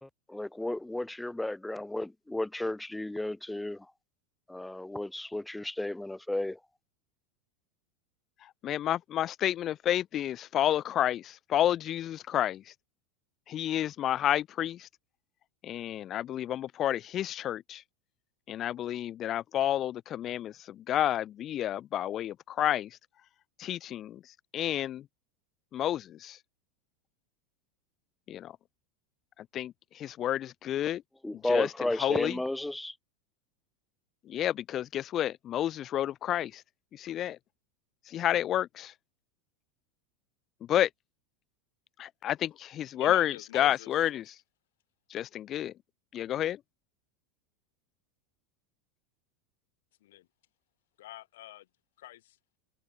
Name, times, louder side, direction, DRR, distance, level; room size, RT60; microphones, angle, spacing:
voice 1, 0.0-3.9 4.5-6.6 31.2-33.0, left 1 dB, 5° left, 1.1 m, -33 dB
voice 2, 8.6-12.6 13.5-14.9 15.6-17.8 18.5-22.9 23.6-24.2 24.5-25.0 25.7-26.4 28.3-28.5 29.5-31.0 31.5-31.7 32.0-32.3 34.3-36.6 36.9-37.4 38.1-38.9 40.7-40.9 42.0-44.3 45.1-45.7 46.1-46.6, left 11 dB, 40° left, 0.6 m, -30 dB
voice 3, 42.9-43.9 50.0-50.3 51.0-51.7 52.0-52.4, left 15 dB, 80° left, 1.8 m, -45 dB
supercardioid pair, 115°, 0 cm